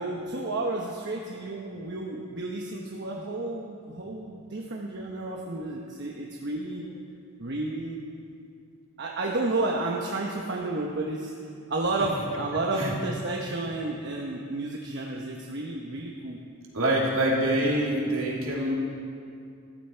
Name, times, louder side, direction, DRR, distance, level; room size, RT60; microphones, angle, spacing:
voice 1, 0.0-6.9 7.4-8.0 9.0-11.3 11.7-16.4, right 2 dB, 55° right, -1 dB, 1.0 m, -31 dB
voice 2, 16.7-18.7, right 1 dB, 70° right, -3 dB, 2.8 m, -25 dB
14.5 x 13.5 x 4.5 m, 2.4 s
head